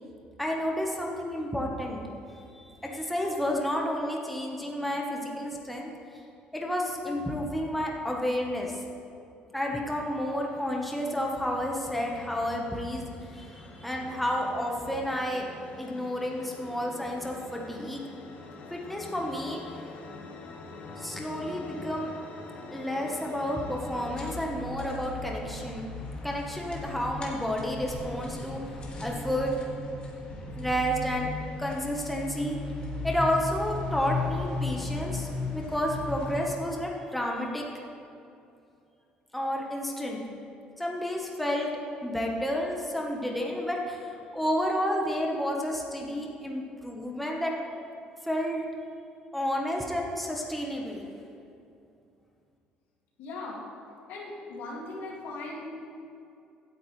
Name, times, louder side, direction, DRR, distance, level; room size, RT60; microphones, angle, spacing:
voice 1, 0.4-2.0 2.3-5.9 6.5-8.8 9.5-15.5 15.8-18.0 18.7-19.6 21.0-22.1 22.7-25.8 26.2-28.6 29.0-29.5 30.6-31.3 31.6-32.6 33.0-37.6 39.3-40.2 40.8-41.7 42.0-44.0 44.3-47.5 48.3-48.6 49.3-51.0, equal, 5° left, -1 dB, 1.2 m, -31 dB
sound 1, 9.8-24.5, left 3 dB, 55° left, 1.3 m, -46 dB
sound 2, 24.0-36.5, left 2 dB, 35° left, 2.1 m, -36 dB
voice 2, 53.2-53.6 54.1-55.8, left 2 dB, 80° left, -3 dB, 2.4 m, -38 dB
16.0 x 9.3 x 3.2 m, 2.5 s
cardioid pair, 135°, 3 cm